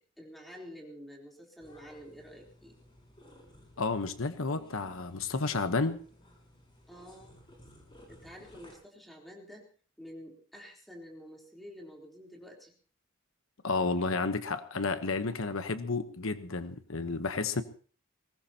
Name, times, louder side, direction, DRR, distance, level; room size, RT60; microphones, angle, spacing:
voice 1, 0.2-2.8 6.9-7.4 8.1-9.7 10.0-12.7, equal, ahead, 3.7 m, -49 dB
sound 1, 1.6-8.7, left 1 dB, 25° left, 5.9 m, -57 dB
voice 2, 3.8-6.0 13.6-17.6, left 3 dB, 80° left, 1.1 m, -31 dB
21.5 x 19.0 x 2.9 m
head